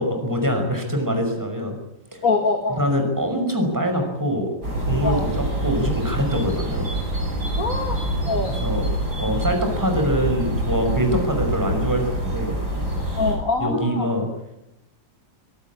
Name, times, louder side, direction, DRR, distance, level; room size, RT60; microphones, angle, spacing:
voice 1, 0.0-1.8 2.8-4.5 4.9-6.8 8.5-8.8 9.2-12.6 13.6-14.3, equal, 10° right, 4 dB, 5.7 m, -24 dB
voice 2, 2.2-2.8 5.0-5.3 7.6-8.0 8.3-8.5 11.1-11.2 13.2-14.1, left 3 dB, 45° left, 3 dB, 2.6 m, -24 dB
sound 1, 4.6-13.4, right 1 dB, 60° right, 8.7 m, -26 dB
25.0 x 18.0 x 8.7 m, 0.91 s
omnidirectional pair, 2.0 m